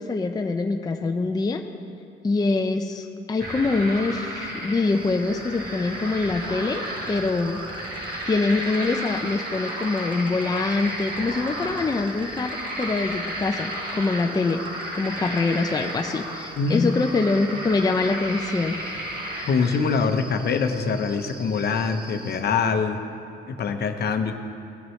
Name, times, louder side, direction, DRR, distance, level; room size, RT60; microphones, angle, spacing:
voice 1, 0.0-1.6 2.2-7.7 8.3-18.8, left 3 dB, 20° left, 5 dB, 0.4 m, -24 dB
sound 1, 3.4-19.8, equal, 50° right, 2.3 m, -33 dB
Insect, 4.9-22.4, right 2 dB, 25° right, 1.0 m, -44 dB
voice 2, 16.5-17.0 19.4-23.0 23.5-24.3, left 5 dB, 55° left, 7 dB, 0.8 m, -24 dB
17.0 x 6.2 x 3.2 m, 2.5 s
cardioid pair, 90°, 20 cm